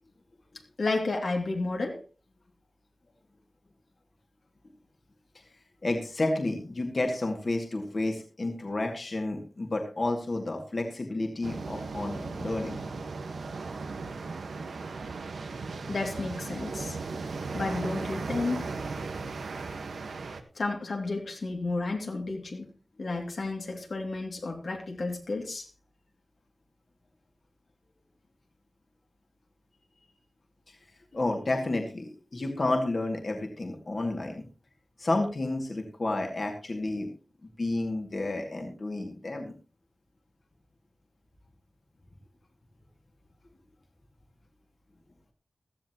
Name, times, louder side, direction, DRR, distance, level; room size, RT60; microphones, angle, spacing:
voice 1, 0.8-2.0 15.9-17.0 17.5-18.7 20.5-22.7 23.0-25.7, left 3 dB, 65° left, 2 dB, 2.6 m, -32 dB
voice 2, 5.8-12.8 30.7-30.8 31.1-34.4 35.0-37.1 37.4-39.5, left 2 dB, 45° left, 2 dB, 2.3 m, -31 dB
sound 1, 11.4-20.4, right 4 dB, 90° right, 1.4 m, -36 dB
16.5 x 13.0 x 3.0 m, 0.35 s
wide cardioid pair, 90°, 0 cm